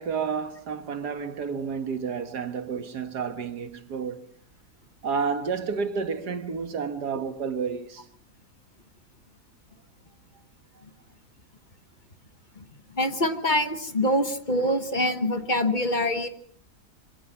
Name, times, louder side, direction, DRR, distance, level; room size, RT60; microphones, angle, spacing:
voice 1, 0.0-4.2 5.0-8.1, right 5 dB, 90° right, 2.1 m, -30 dB
voice 2, 12.9-16.3, left 1 dB, 30° left, 1.3 m, -25 dB
24.5 x 18.0 x 7.3 m
omnidirectional pair, 1.7 m